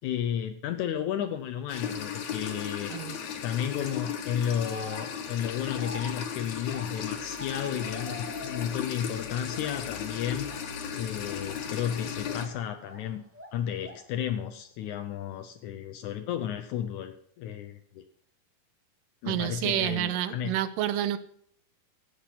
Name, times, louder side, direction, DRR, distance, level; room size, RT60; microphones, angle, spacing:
voice 1, 0.0-2.9 3.4-10.5 11.0-13.2 13.5-18.0 19.2-20.5, left 9 dB, 85° left, 7 dB, 1.7 m, -33 dB
sound 1, 1.7-12.5, left 7 dB, 60° left, 2.4 m, -36 dB
sound 2, 3.6-4.0 4.6-8.9 9.2-10.0 10.4-10.6 11.4-13.1 13.3-14.1, right 1 dB, 5° right, 1.0 m, -46 dB
voice 2, 19.3-21.2, right 12 dB, 80° right, 13 dB, 2.1 m, -29 dB
14.5 x 8.3 x 5.8 m, 0.64 s
omnidirectional pair, 4.4 m